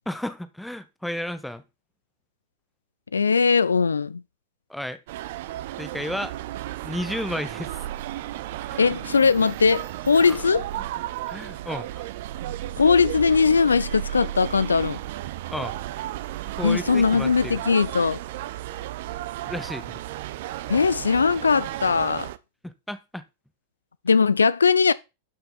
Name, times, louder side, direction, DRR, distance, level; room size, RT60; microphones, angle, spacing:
voice 1, 0.1-1.6 4.7-5.0 5.8-6.3 6.8-7.8 8.7-8.8 10.2-10.5 11.3-12.0 15.5-15.8 16.6-17.6 19.5-20.0 22.6-23.2, left 1 dB, 5° left, 0.9 m, -32 dB
voice 2, 3.1-4.2 8.8-10.7 12.8-15.0 16.6-18.2 20.7-22.3 24.1-24.9, left 5 dB, 75° left, 0.4 m, -20 dB
sound 1, 5.1-22.4, right 14 dB, 55° right, 0.6 m, -34 dB
12.0 x 5.9 x 4.0 m
figure-of-eight pair, 90°, 0 cm